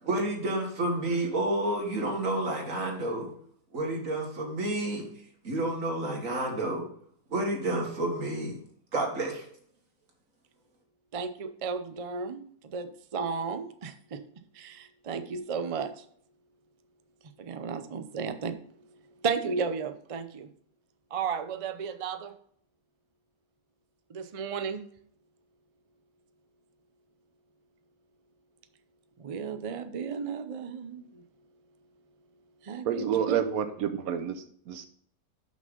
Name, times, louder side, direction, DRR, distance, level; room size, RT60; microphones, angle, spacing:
voice 1, 0.0-3.3 3.7-5.1 5.4-6.8 7.3-8.6 8.9-9.4, right 1 dB, 65° right, 1 dB, 2.2 m, -30 dB
voice 2, 11.1-14.2 14.5-16.0 17.4-18.5 19.2-20.5 21.1-22.3 24.1-24.8 29.2-31.2 32.6-33.4, right 5 dB, 50° right, 9 dB, 0.4 m, -34 dB
voice 3, 32.8-34.9, right 8 dB, 90° right, 9 dB, 1.1 m, -29 dB
6.2 x 5.9 x 5.3 m, 0.63 s
omnidirectional pair, 1.5 m